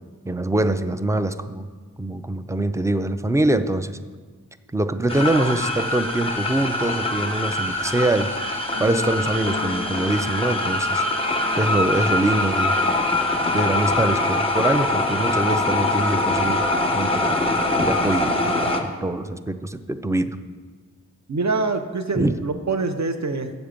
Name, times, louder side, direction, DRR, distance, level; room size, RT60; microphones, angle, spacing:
voice 1, 0.3-1.7 2.0-4.0 4.7-8.3 8.8-11.0 11.6-12.7 13.5-16.6 16.9-18.4 18.8-20.4 22.1-22.4, right 2 dB, 10° right, 11 dB, 0.4 m, -24 dB
sound 1, 5.1-18.8, left 2 dB, 15° left, 1.0 m, -23 dB
sound 2, 8.7-15.8 16.6-16.7, left 3 dB, 80° right, 2.2 m, -39 dB
voice 2, 21.3-23.5, right 3 dB, 50° right, 8 dB, 0.7 m, -25 dB
7.9 x 7.1 x 5.1 m, 1.5 s
wide cardioid pair, 60°, 35 cm